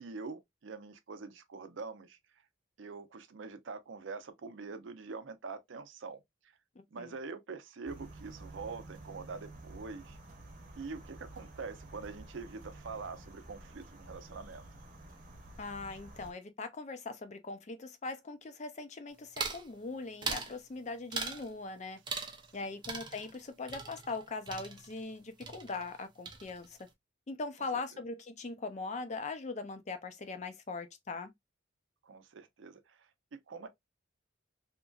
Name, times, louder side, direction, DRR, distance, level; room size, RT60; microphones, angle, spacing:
voice 1, 0.0-2.4 2.8-6.6 6.9-10.2 10.8-14.6 22.6-22.8 27.9-28.0 32.0-33.7, right 4 dB, 75° right, 0.5 m, -45 dB
sound 1, 7.9-16.3, right 2 dB, 45° right, 0.8 m, -51 dB
voice 2, 15.6-22.0 22.5-26.8 27.3-31.3, left 3 dB, 35° left, 0.4 m, -40 dB
sound 2, 19.4-19.7 20.2-20.6 21.1-21.5 22.1-22.6 22.8-25.2 25.4-26.0 26.3-26.8, right 4 dB, 25° right, 0.5 m, -40 dB
2.9 x 2.5 x 2.2 m
head